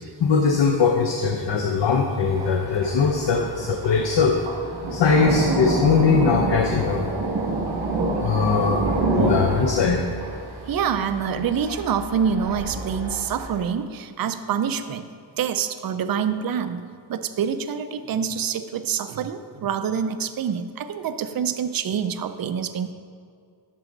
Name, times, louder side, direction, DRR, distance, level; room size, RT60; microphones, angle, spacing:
voice 1, 0.2-4.4 4.9-7.0 8.2-8.8 9.2-10.0, left 5 dB, 65° left, 3 dB, 0.7 m, -20 dB
Thunder, 2.3-13.6, right 2 dB, 70° right, 1.8 m, -27 dB
voice 2, 10.7-15.1 15.4-22.9, right 7 dB, 50° right, 9 dB, 0.5 m, -26 dB
11.0 x 6.1 x 3.9 m, 2.2 s
wide cardioid pair, 130°, 46 cm